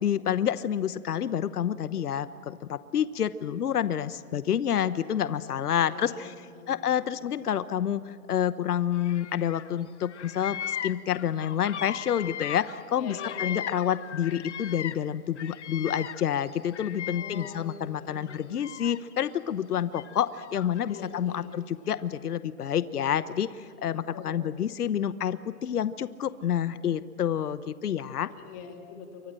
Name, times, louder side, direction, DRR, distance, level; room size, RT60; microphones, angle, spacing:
voice 1, 0.0-6.3 6.7-28.3, left 9 dB, 80° left, 14 dB, 1.0 m, -28 dB
voice 2, 5.5-7.1 12.9-13.8 17.1-18.3 20.8-21.5 24.1-24.6 28.2-29.3, left 5 dB, 25° left, 3 dB, 2.7 m, -45 dB
Bird vocalization bird call bird song, 9.0-9.7 10.0-15.1 15.4-17.8 18.2-19.2 19.9-21.0, left 9 dB, 50° left, 0.8 m, -38 dB
28.5 x 24.5 x 7.6 m, 2.1 s
hypercardioid pair, 165°, 46 cm